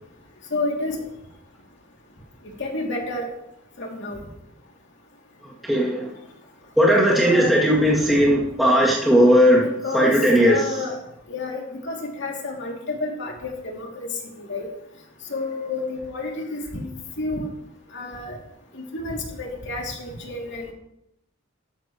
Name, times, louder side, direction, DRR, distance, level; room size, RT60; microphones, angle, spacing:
voice 1, 0.5-1.0 2.6-3.3 3.8-4.2 7.2-7.5 9.6-10.1 10.4-11.0 11.3-14.1 14.4-14.7 15.3-16.9 17.2-17.5 17.9-18.4 18.7-20.7, left 2 dB, 60° left, 0 dB, 2.8 m, -30 dB
voice 2, 5.7-6.1 6.8-9.6 9.9-10.6, equal, ahead, -7 dB, 2.5 m, -17 dB
14.0 x 13.5 x 3.1 m, 0.79 s
head